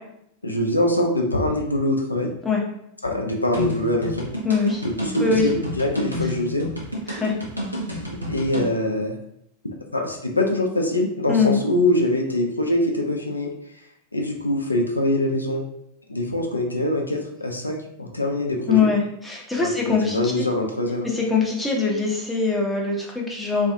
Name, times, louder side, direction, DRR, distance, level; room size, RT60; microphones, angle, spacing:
voice 1, 0.4-2.3 3.0-4.3 4.8-6.6 8.3-9.1 9.9-13.5 14.1-15.6 16.1-18.9 19.6-21.1, left 1 dB, 80° left, 2 dB, 0.3 m, -23 dB
sound 1, 3.5-8.7, left 1 dB, 85° right, 0.6 m, -30 dB
voice 2, 4.4-4.8 5.2-5.5 7.1-7.3 11.3-11.6 18.7-20.3 21.1-23.7, left 5 dB, 5° left, -2 dB, 0.6 m, -22 dB
2.5 x 2.4 x 2.5 m, 0.75 s
figure-of-eight pair, 90°, 0 cm